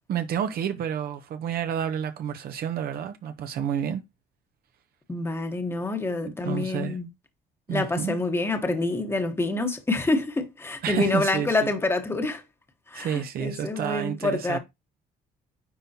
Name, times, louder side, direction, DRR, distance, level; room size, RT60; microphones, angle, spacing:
voice 1, 0.1-4.0 6.2-7.0 7.7-8.2 10.8-11.7 12.9-14.6, right 8 dB, 65° right, 0.9 m, -30 dB
voice 2, 5.1-7.1 7.7-12.4 12.9-14.6, left 2 dB, 15° left, 1.2 m, -27 dB
9.8 x 3.8 x 2.9 m
cardioid pair, 110°, 17 cm